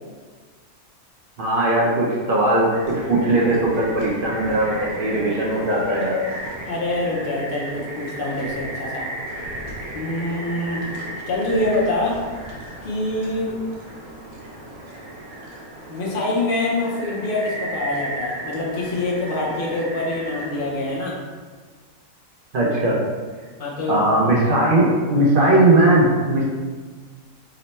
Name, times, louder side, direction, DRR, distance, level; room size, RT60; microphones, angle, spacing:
voice 1, 1.4-6.2 22.5-23.0 23.9-26.4, right 1 dB, 55° right, -4 dB, 0.6 m, -19 dB
sound 1, 2.7-21.0, right 1 dB, 85° right, 1.1 m, -35 dB
voice 2, 6.6-9.1 9.9-10.8 11.3-12.2 12.8-13.6 15.9-21.2 23.6-24.0, left 2 dB, 50° left, -4 dB, 0.7 m, -25 dB
2.9 x 2.1 x 4.0 m, 1.5 s
omnidirectional pair, 1.5 m